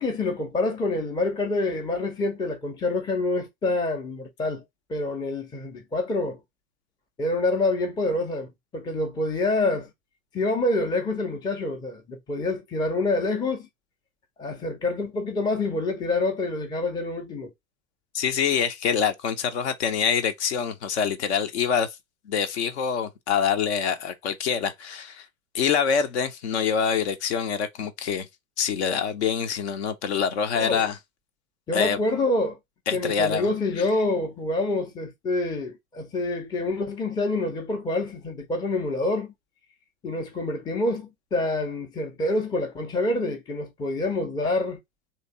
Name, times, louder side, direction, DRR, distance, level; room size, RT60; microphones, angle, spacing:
voice 1, 0.0-4.6 4.9-6.4 7.2-9.9 10.3-13.7 14.4-17.5 30.6-30.8 31.7-32.6 32.9-39.3 40.0-44.8, left 2 dB, 10° left, 0.6 m, -27 dB
voice 2, 18.1-22.0 22.2-25.3 25.5-28.3 28.6-31.0 31.7-32.0 32.9-33.5 33.8-33.9, left 7 dB, 50° left, 0.8 m, -25 dB
3.3 x 2.9 x 4.0 m
figure-of-eight pair, 95°, 42 cm